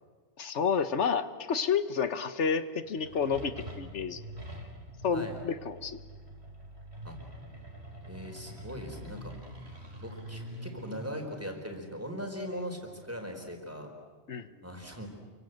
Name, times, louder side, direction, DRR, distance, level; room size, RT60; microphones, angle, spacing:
voice 1, 0.4-4.2 5.0-6.0 14.3-14.5, left 6 dB, 90° left, 12 dB, 1.5 m, -30 dB
sound 1, 2.8-13.2, equal, 65° right, 4.6 m, -45 dB
voice 2, 8.1-9.3 10.0-13.9 14.6-15.1, equal, 10° right, 2 dB, 4.4 m, -40 dB
29.0 x 24.5 x 8.0 m, 1.5 s
omnidirectional pair, 1.2 m